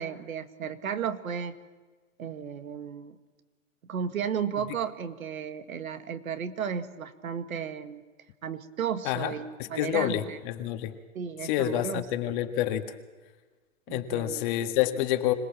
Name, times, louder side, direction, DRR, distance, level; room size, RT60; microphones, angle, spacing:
voice 1, 0.0-1.6 2.2-3.2 3.9-8.0 8.4-10.4 11.2-12.1 13.9-14.4, right 7 dB, 80° right, 10 dB, 1.9 m, -34 dB
voice 2, 9.6-10.9 11.4-12.9 13.9-15.3, left 12 dB, 35° left, 7 dB, 1.7 m, -28 dB
26.0 x 18.0 x 7.4 m, 1.4 s
hypercardioid pair, 140°, 41 cm